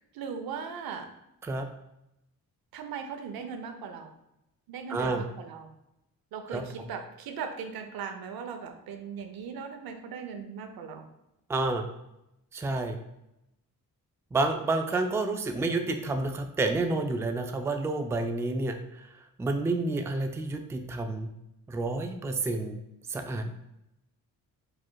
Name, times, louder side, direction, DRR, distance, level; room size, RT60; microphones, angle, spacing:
voice 1, 0.1-1.1 2.7-4.1 4.7-5.7 6.3-11.1, right 6 dB, 85° right, 7 dB, 0.7 m, -38 dB
voice 2, 4.9-5.2 6.5-6.6 11.5-11.9 12.5-13.0 14.3-19.1 19.4-21.3 21.7-22.8 23.1-23.6, right 2 dB, 10° right, 5 dB, 0.3 m, -29 dB
4.8 x 4.4 x 2.2 m, 0.87 s
cardioid pair, 110°, 35 cm